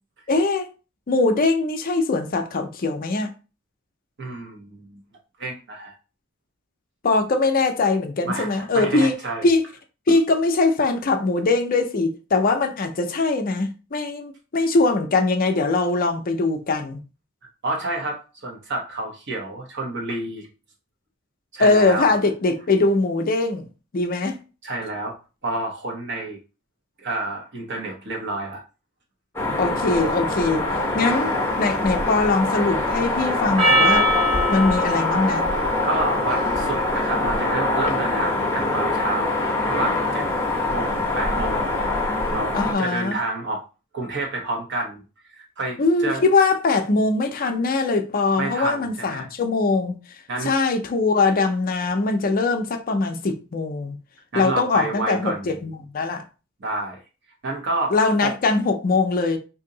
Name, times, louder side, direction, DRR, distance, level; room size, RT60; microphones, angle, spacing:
voice 1, 0.3-0.7 1.1-3.3 7.0-9.2 9.4-9.6 10.1-17.0 21.6-23.7 23.9-24.4 29.6-34.1 34.5-35.5 42.5-43.2 45.8-50.0 50.4-54.0 54.3-56.2 57.9-59.4, left 3 dB, 45° left, 0.5 m, -21 dB
voice 2, 4.2-5.0 5.4-5.9 8.2-9.5 17.6-20.5 21.5-22.2 24.6-25.1 25.4-26.4 27.0-28.6 35.2-35.3 35.8-39.4 39.7-40.3 40.7-43.6 43.9-46.2 48.4-49.3 50.3-50.5 54.3-55.6 56.6-57.0 57.4-57.9 58.2-58.3, right 2 dB, 60° right, 1.0 m, -29 dB
sound 1, 29.4-42.7, left 2 dB, 10° left, 0.7 m, -24 dB
Percussion, 33.6-38.2, equal, 25° right, 0.9 m, -24 dB
2.8 x 2.6 x 3.8 m
head